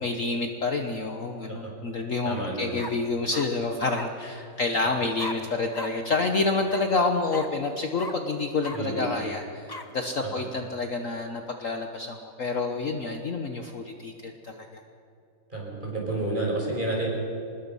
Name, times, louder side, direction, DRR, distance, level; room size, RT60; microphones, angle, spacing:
voice 1, 0.0-9.7 9.9-14.8, left 3 dB, 50° left, 5 dB, 1.4 m, -28 dB
voice 2, 2.2-2.8 8.7-9.1 10.2-10.4 15.5-17.1, right 2 dB, 25° right, -2 dB, 6.0 m, -30 dB
sound 1, 2.3-2.4 2.8-3.5 3.9-4.1 5.2-5.4 5.7-5.9 6.2-6.3 6.7-6.8 7.3-7.5 8.0-8.1 8.6-8.8 9.7-9.8, left 2 dB, 15° left, 0.9 m, -37 dB
25.0 x 20.5 x 5.5 m, 2.8 s
omnidirectional pair, 1.9 m